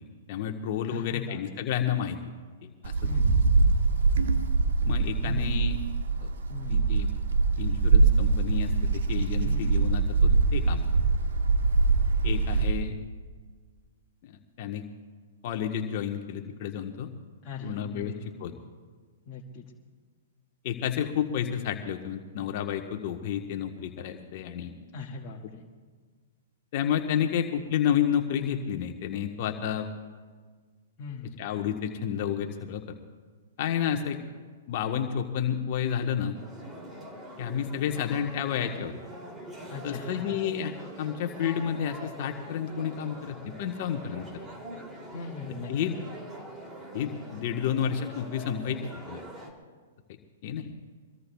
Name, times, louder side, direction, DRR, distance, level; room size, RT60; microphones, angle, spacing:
voice 1, 0.3-2.2 2.8-3.1 4.8-5.8 6.2-6.3 6.7-7.1 7.6-10.9 12.2-13.0 14.2-14.8 15.4-17.1 17.6-18.1 18.4-18.5 20.6-24.7 26.7-29.9 31.4-32.8 33.6-34.2 34.7-36.3 37.4-38.9 39.8-40.7 41.0-44.2 45.7-46.0 46.9-48.8 49.1-49.2 50.4-50.7, left 9 dB, 50° left, 4 dB, 1.2 m, -30 dB
voice 2, 0.9-1.4 3.0-3.5 5.2-5.6 6.5-6.9 9.4-9.9 17.4-18.6 19.3-19.6 24.9-25.6 31.0-31.4 39.7-40.4 45.1-45.9, left 4 dB, 30° left, -5 dB, 1.9 m, -40 dB
Wind, 2.8-12.9, right 4 dB, 75° right, 1.4 m, -23 dB
sound 1, 36.3-49.5, right 1 dB, 20° right, 2.8 m, -44 dB
24.5 x 21.5 x 2.3 m, 1.5 s
hypercardioid pair, 125°, 0 cm